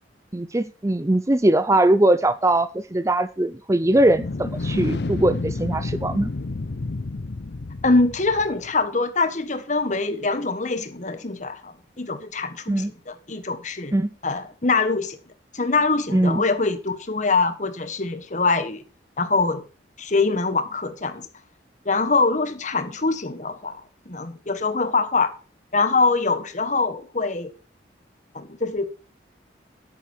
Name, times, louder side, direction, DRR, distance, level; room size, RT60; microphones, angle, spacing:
voice 1, 0.3-6.3 12.7-12.9 13.9-14.1 16.1-16.4, right 1 dB, 15° right, 0.5 m, -21 dB
sound 1, 3.8-8.7, left 3 dB, 65° left, 0.6 m, -30 dB
voice 2, 7.8-13.9 14.2-15.2 15.5-18.8 19.2-19.6 20.0-21.3 21.8-25.3 25.7-27.5 28.3-28.8, left 3 dB, 40° left, 1.5 m, -24 dB
10.5 x 9.4 x 4.5 m
head